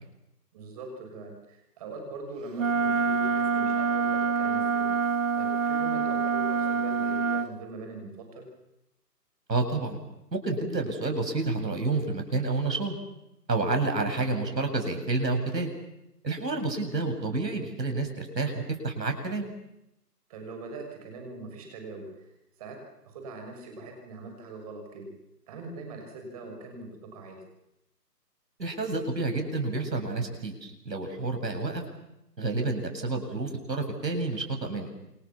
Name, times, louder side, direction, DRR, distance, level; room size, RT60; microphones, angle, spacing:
voice 1, 0.5-4.9 5.3-8.5 16.9-17.0 20.3-22.3 22.6-22.8 23.0-25.1 25.5-27.4, right 3 dB, 20° right, 3 dB, 6.5 m, -42 dB
Wind instrument woodwind instrument, 2.6-7.5, right 5 dB, 50° right, 1.6 m, -26 dB
voice 2, 9.5-10.0 10.3-13.0 13.5-15.7 16.2-19.5 28.6-31.8 32.4-34.9, right 3 dB, 80° right, 5 dB, 7.8 m, -29 dB
28.5 x 27.0 x 7.3 m, 0.87 s
hypercardioid pair, 165°, 49 cm